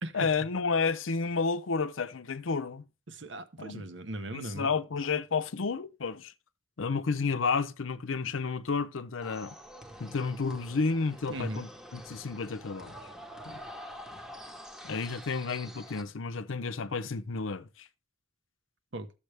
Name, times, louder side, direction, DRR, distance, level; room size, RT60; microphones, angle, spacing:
voice 1, 0.1-2.8 3.6-3.8 4.3-6.3 6.8-9.6 10.0-12.9 13.5-13.6 14.8-17.9, left 4 dB, 80° left, 0.6 m, -31 dB
voice 2, 3.1-4.7 11.3-11.6 18.9-19.1, right 1 dB, 65° right, 1.0 m, -38 dB
sound 1, 9.2-16.0, equal, 5° right, 1.0 m, -47 dB
13.5 x 7.3 x 3.3 m
head